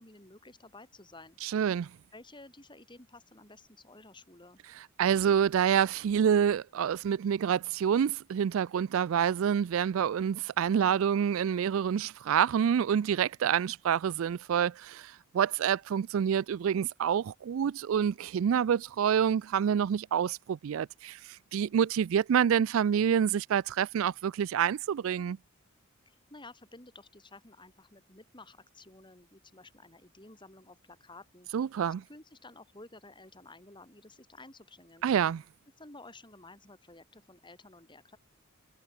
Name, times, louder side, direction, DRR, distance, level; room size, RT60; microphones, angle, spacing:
voice 1, 0.0-1.4 2.1-4.6 26.1-31.5 32.1-35.1 35.8-38.2, left 2 dB, 20° left, 4.2 m, -53 dB
voice 2, 1.4-1.9 4.8-25.4 31.5-32.0 35.0-35.4, right 8 dB, 65° right, 0.3 m, -27 dB
head